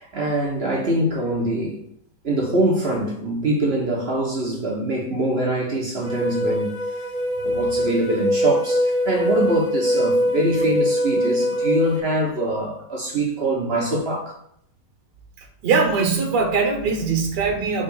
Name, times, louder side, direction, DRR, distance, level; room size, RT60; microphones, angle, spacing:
voice 1, 0.0-1.8 2.2-6.7 7.4-14.4, right 1 dB, 40° right, 1.1 m, -23 dB
sound 1, 6.0-12.0, equal, 35° left, 0.7 m, -23 dB
voice 2, 15.6-17.8, right 4 dB, 65° right, 1.8 m, -21 dB
5.1 x 3.3 x 5.5 m
omnidirectional pair, 2.0 m